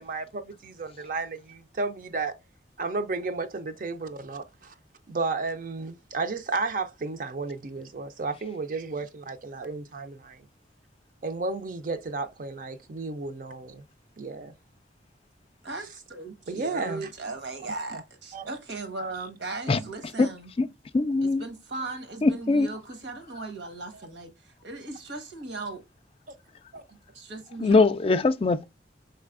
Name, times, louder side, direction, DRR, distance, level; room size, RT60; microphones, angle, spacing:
voice 1, 0.0-2.4 2.8-4.7 5.1-10.4 11.2-13.8 14.2-14.5 16.5-17.1 17.9-18.0 18.3-18.5 26.7-26.8, right 3 dB, 45° right, 0.5 m, -33 dB
voice 2, 15.6-20.5 21.2-25.8 27.1-27.8, right 3 dB, 80° right, 1.2 m, -38 dB
voice 3, 20.9-21.4 22.2-22.7 27.6-28.7, left 3 dB, 30° left, 0.3 m, -21 dB
5.3 x 3.2 x 2.4 m
head